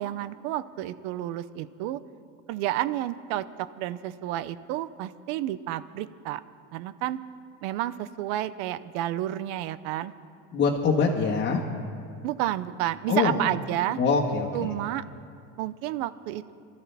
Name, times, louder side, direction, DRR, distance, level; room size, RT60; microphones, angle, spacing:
voice 1, 0.0-2.0 2.5-6.4 6.7-7.2 7.6-10.1 12.2-14.0 14.5-15.0 15.6-16.5, right 14 dB, 75° right, 14 dB, 0.8 m, -30 dB
voice 2, 10.5-11.6 13.1-13.4 14.0-14.7, left 5 dB, 30° left, -2 dB, 1.5 m, -24 dB
27.0 x 13.5 x 3.5 m, 2.3 s
cardioid pair, 150°, 38 cm